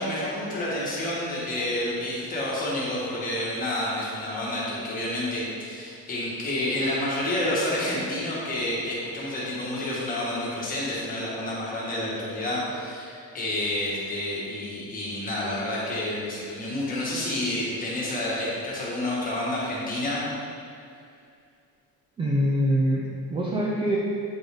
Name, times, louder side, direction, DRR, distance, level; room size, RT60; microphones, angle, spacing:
voice 1, 0.0-20.2, left 1 dB, 25° left, -6 dB, 1.4 m, -29 dB
voice 2, 22.2-24.0, equal, 15° right, -4 dB, 0.3 m, -24 dB
7.7 x 3.9 x 3.4 m, 2.4 s
cardioid pair, 170°, 34 cm